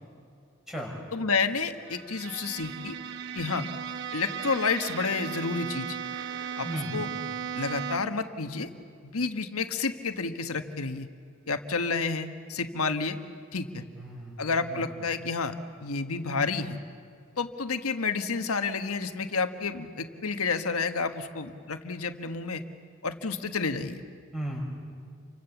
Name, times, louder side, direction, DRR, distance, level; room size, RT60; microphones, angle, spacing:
voice 1, 1.1-2.9 3.3-3.7 4.1-6.0 6.6-7.1 7.5-8.7 9.0-11.1 11.5-13.2 13.5-13.8 14.4-15.5 15.8-16.8 17.4-22.6 23.0-24.0, left 4 dB, 85° left, 7 dB, 1.4 m, -30 dB
Bowed string instrument, 1.8-8.3, right 7 dB, 55° right, 0.9 m, -36 dB
voice 2, 6.6-7.0 13.9-14.4 14.7-14.8 24.3-24.6, right 1 dB, ahead, -2 dB, 6.5 m, -35 dB
29.5 x 25.0 x 7.2 m, 2.3 s
head